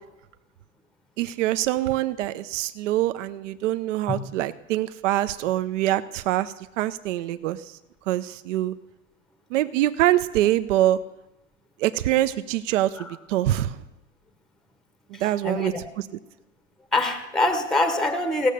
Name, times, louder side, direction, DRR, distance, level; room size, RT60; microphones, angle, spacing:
voice 1, 1.2-7.8 8.1-8.7 9.5-11.0 11.8-13.8 15.1-16.1, right 14 dB, 65° right, 13 dB, 0.7 m, -24 dB
voice 2, 15.1-15.7 16.9-18.5, left 2 dB, ahead, 8 dB, 0.8 m, -24 dB
17.0 x 6.5 x 6.6 m, 1.0 s
hypercardioid pair, 130°, 40 cm